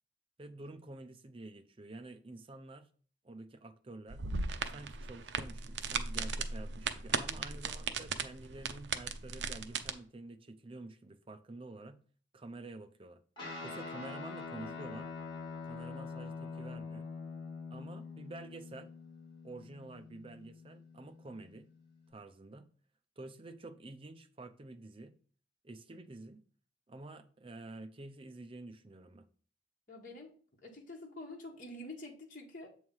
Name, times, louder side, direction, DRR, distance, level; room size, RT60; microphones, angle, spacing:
voice 1, 0.4-2.9 3.2-4.3 4.7-12.0 12.3-13.2 13.6-15.1 15.6-17.1 17.7-18.9 19.4-21.7 22.1-22.7 23.2-25.1 25.6-26.4 26.9-29.3, right 2 dB, 30° right, 0.6 m, -49 dB
sound 1, 4.1-9.9, right 5 dB, 70° right, 0.6 m, -37 dB
Guitar, 13.4-22.1, left 4 dB, 25° left, 2.4 m, -45 dB
voice 2, 29.9-30.4 30.6-32.8, left 1 dB, 45° left, 1.5 m, -47 dB
7.6 x 3.2 x 5.4 m
head